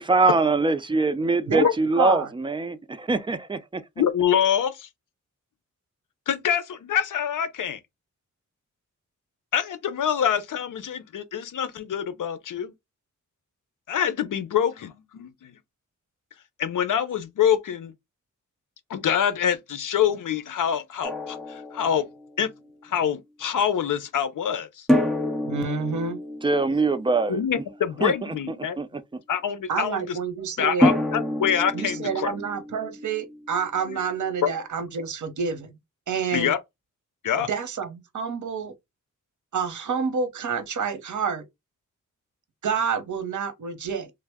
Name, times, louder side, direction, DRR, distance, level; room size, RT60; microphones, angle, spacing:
voice 1, 0.0-3.8 26.4-27.4 28.0-28.1 28.8-28.9, right 3 dB, 15° right, 0.4 m, -23 dB
voice 2, 2.0-2.3 25.4-26.2 29.7-30.9 31.7-35.8 36.1-36.5 37.5-38.7 39.5-41.4 42.6-44.1, right 6 dB, 65° right, 0.9 m, -28 dB
voice 3, 4.0-4.9 6.3-7.8 9.5-12.7 13.9-15.6 16.6-17.9 18.9-22.1 22.4-22.5 22.8-24.9 27.3-28.8 29.3-30.2 30.6-32.3 33.9-34.0 34.4-34.5 36.3-36.6 37.2-37.5, left 9 dB, 75° left, 0.7 m, -25 dB
Drum, 21.0-22.4 24.9-27.9 30.8-33.7, left 1 dB, ahead, 0.8 m, -27 dB
3.4 x 2.0 x 3.4 m
wide cardioid pair, 140°, 32 cm